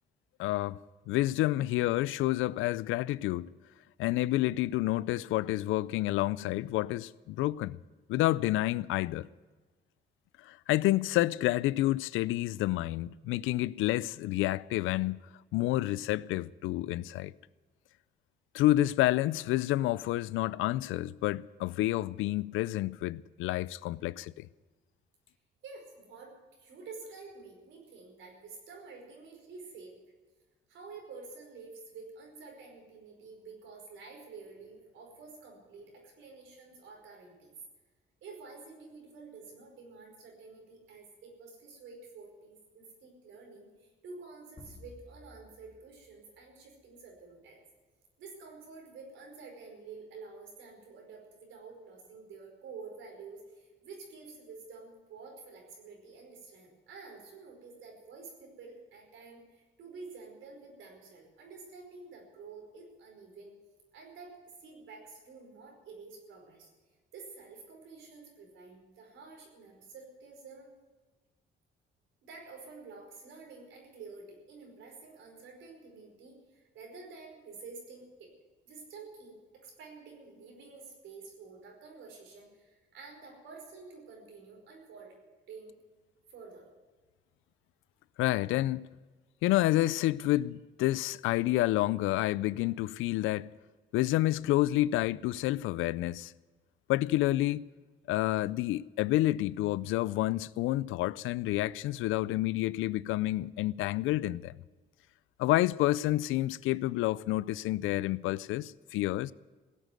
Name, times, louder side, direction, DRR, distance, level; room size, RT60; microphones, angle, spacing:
voice 1, 0.4-0.8 1.1-3.5 4.0-7.8 8.1-9.3 10.4-15.2 15.5-17.3 18.5-24.5 88.2-88.9 89.4-93.5 93.9-96.3 96.9-97.6 98.1-104.5 105.4-109.3, left 16 dB, 90° left, 0.4 m, -29 dB
voice 2, 25.6-29.9 30.7-37.5 38.2-47.6 48.2-63.5 63.9-66.7 67.1-70.7 72.2-78.3 78.6-85.1 85.5-85.7 86.3-86.7, right 4 dB, 80° right, 5.1 m, -49 dB
sound 1, 44.6-47.0, left 1 dB, 30° left, 4.0 m, -54 dB
17.0 x 8.3 x 9.2 m
cardioid pair, 90°, 20 cm